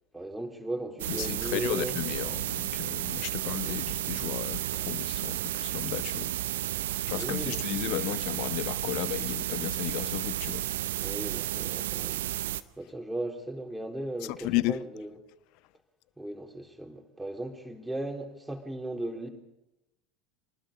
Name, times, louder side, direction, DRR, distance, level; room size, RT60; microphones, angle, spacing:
voice 1, 0.1-2.0 3.6-3.8 7.1-7.6 11.0-12.3 12.8-15.1 16.2-19.3, right 1 dB, 5° right, 3.9 m, -37 dB
sound 1, 1.0-12.6, right 14 dB, 65° right, 0.8 m, -32 dB
voice 2, 1.1-6.3 7.1-10.7 14.3-14.8, left 20 dB, 50° left, 0.7 m, -34 dB
27.5 x 19.5 x 5.2 m
figure-of-eight pair, 70°, 0 cm